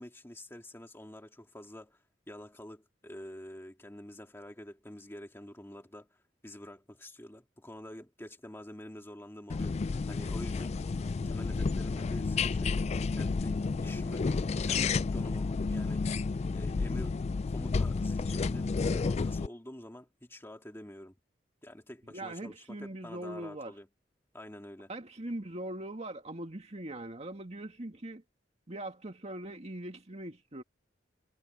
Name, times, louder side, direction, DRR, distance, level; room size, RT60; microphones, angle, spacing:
voice 1, 0.0-9.8 10.1-10.9 11.2-12.8 13.1-16.2 16.5-21.1 21.6-23.9 24.3-24.9, left 1 dB, 15° left, 1.9 m, -47 dB
sound 1, 9.5-19.5, left 4 dB, 35° left, 0.3 m, -31 dB
voice 2, 22.1-23.7 24.9-28.2 28.7-30.6, right 1 dB, 35° right, 2.2 m, -41 dB
head